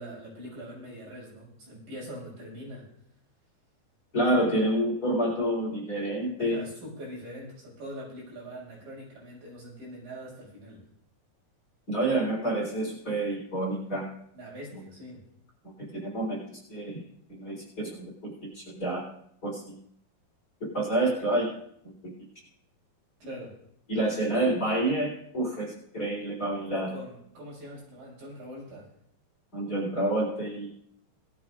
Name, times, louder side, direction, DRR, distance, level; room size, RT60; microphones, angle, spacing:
voice 1, 0.0-2.9 6.4-10.8 14.3-15.2 23.2-23.6 26.9-28.9, equal, 70° right, -5 dB, 7.4 m, -43 dB
voice 2, 4.1-6.6 11.9-14.1 15.6-19.0 19.4-19.8 20.6-21.5 21.8-22.1 23.9-27.0 29.5-30.7, right 1 dB, 25° left, -3 dB, 4.1 m, -28 dB
20.5 x 13.0 x 2.5 m, 0.69 s
omnidirectional pair, 4.2 m